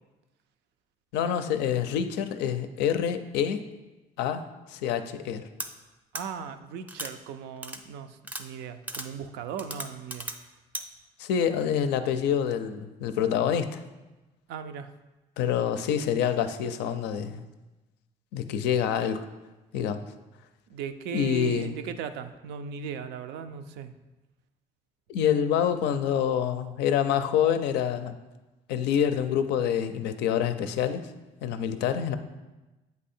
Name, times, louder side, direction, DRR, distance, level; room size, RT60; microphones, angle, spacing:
voice 1, 1.1-3.6 4.2-5.5 11.2-13.8 15.4-17.4 18.3-19.2 19.7-20.0 21.1-21.7 25.1-28.1 28.7-31.1 31.4-32.2, left 8 dB, 90° left, 10 dB, 0.4 m, -26 dB
sound 1, 5.6-5.7 6.1-6.2 6.9-7.1 7.6-7.8 8.2-8.4 8.9-9.1 9.6-10.4 10.7-10.8, right 1 dB, 10° right, 0.4 m, -35 dB
voice 2, 6.1-10.3 14.5-14.9 20.7-23.9, right 7 dB, 90° right, 9 dB, 0.4 m, -37 dB
8.1 x 2.7 x 4.2 m, 1.1 s
cardioid pair, 110°, 17 cm